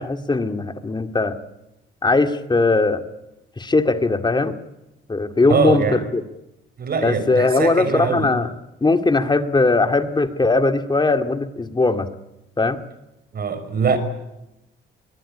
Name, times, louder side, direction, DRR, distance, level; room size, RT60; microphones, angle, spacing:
voice 1, 0.0-1.4 2.0-3.0 3.6-4.6 5.1-6.2 7.0-8.5 8.8-12.1 12.6-12.8, left 3 dB, 20° left, 2.2 m, -19 dB
voice 2, 5.5-6.0 6.8-8.3 13.3-14.0, right 6 dB, 50° right, 5.3 m, -22 dB
22.5 x 19.5 x 9.9 m
cardioid pair, 90°, 20 cm